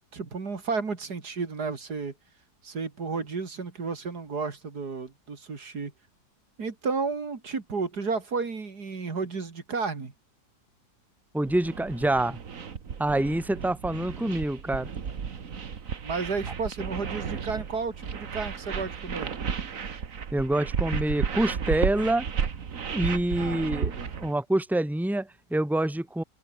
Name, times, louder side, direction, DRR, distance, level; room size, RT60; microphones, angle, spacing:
voice 1, 0.1-2.1 2.6-5.9 6.6-10.1 13.6-13.7 16.0-19.4 23.3-24.2, right 4 dB, 70° right, 3.2 m, -32 dB
voice 2, 11.3-12.4 13.0-14.9 20.3-22.2 22.9-23.9 24.2-26.2, right 1 dB, ahead, 2.3 m, -26 dB
sound 1, 11.4-24.3, right 6 dB, 55° right, 1.9 m, -33 dB
open air
omnidirectional pair, 1.8 m